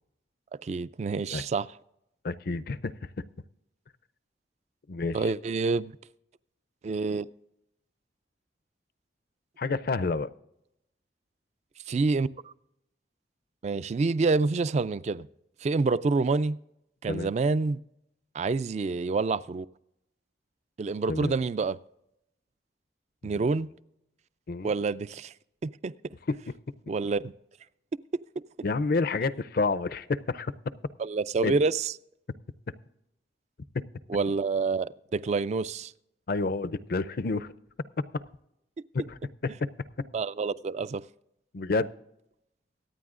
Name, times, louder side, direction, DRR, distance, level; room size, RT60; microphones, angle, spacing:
voice 1, 0.6-1.7 5.1-5.9 6.8-7.3 11.9-12.3 13.6-15.3 15.6-16.6 17.0-17.8 18.3-19.7 20.8-21.8 23.2-23.7 24.6-25.3 25.6-25.9 26.9-27.3 31.0-31.9 34.1-35.9 40.1-41.0, right 4 dB, 40° right, 0.3 m, -27 dB
voice 2, 2.2-2.9 4.9-5.3 9.6-10.3 17.1-17.3 21.1-21.3 23.2-23.4 24.5-24.7 26.3-26.4 28.6-30.5 31.4-31.5 36.3-37.5 38.9-39.7 41.5-41.9, left 3 dB, 55° left, 0.5 m, -29 dB
24.0 x 9.3 x 2.5 m
head